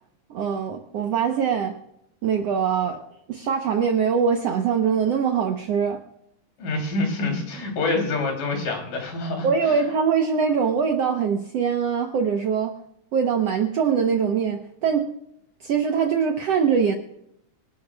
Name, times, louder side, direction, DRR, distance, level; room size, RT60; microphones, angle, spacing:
voice 1, 0.3-1.7 2.2-3.0 3.3-6.0 9.4-12.7 13.1-15.1 15.6-17.0, right 6 dB, 65° right, 4 dB, 1.6 m, -22 dB
voice 2, 6.6-9.8, left 2 dB, 70° left, 1 dB, 4.6 m, -26 dB
25.0 x 12.0 x 2.3 m, 0.75 s
omnidirectional pair, 3.9 m